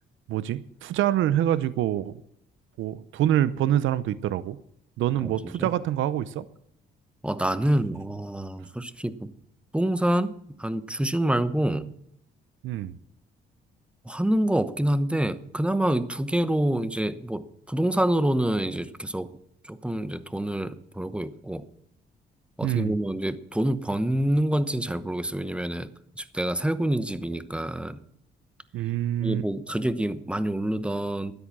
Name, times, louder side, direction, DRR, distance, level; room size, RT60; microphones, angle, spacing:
voice 1, 0.3-2.2 2.8-4.6 5.0-6.5 12.6-13.0 22.6-22.9 28.7-29.4, right 12 dB, 80° right, 17 dB, 0.6 m, -26 dB
voice 2, 7.2-9.3 9.7-11.9 14.0-19.3 19.6-21.6 22.6-25.9 26.2-28.0 29.2-31.3, right 1 dB, 5° right, 14 dB, 0.9 m, -27 dB
13.0 x 9.8 x 6.0 m, 0.74 s
cardioid pair, 90°, 20 cm